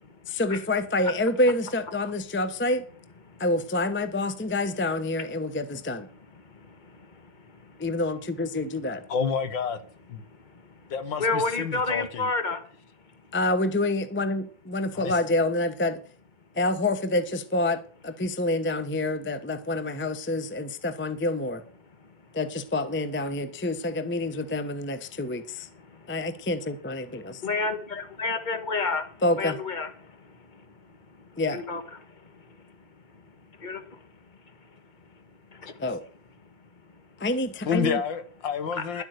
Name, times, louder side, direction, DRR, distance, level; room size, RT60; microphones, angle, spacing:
voice 1, 0.3-2.9 3.4-6.1 7.8-9.0 13.3-16.0 16.6-21.6 22.3-25.7 26.1-27.4 29.2-29.6 31.4-31.6 35.8-36.0 37.2-38.0, left 2 dB, 10° left, 0.6 m, -27 dB
voice 2, 9.1-9.8 10.1-10.2 10.9-12.3 14.9-15.1 37.7-39.0, left 6 dB, 85° left, 2.0 m, -29 dB
voice 3, 11.2-12.6 27.4-29.0 29.4-29.9 31.5-31.8 33.6-33.8 39.0-39.1, left 3 dB, 25° left, 1.6 m, -28 dB
12.0 x 8.2 x 6.6 m
omnidirectional pair, 2.0 m